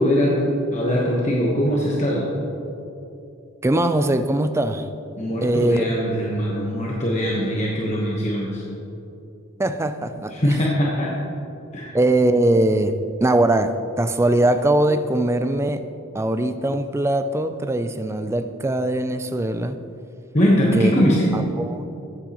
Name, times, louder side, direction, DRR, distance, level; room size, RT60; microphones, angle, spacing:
voice 1, 0.0-2.3 5.2-8.6 10.3-11.1 11.7-11.9 20.3-21.3, equal, 35° left, -4 dB, 1.1 m, -21 dB
voice 2, 3.6-4.9 5.4-5.8 9.6-10.6 11.9-15.8 16.1-19.8 20.7-20.9 21.3-21.8, right 1 dB, 15° right, 10 dB, 0.3 m, -21 dB
13.5 x 9.0 x 3.0 m, 2.8 s
head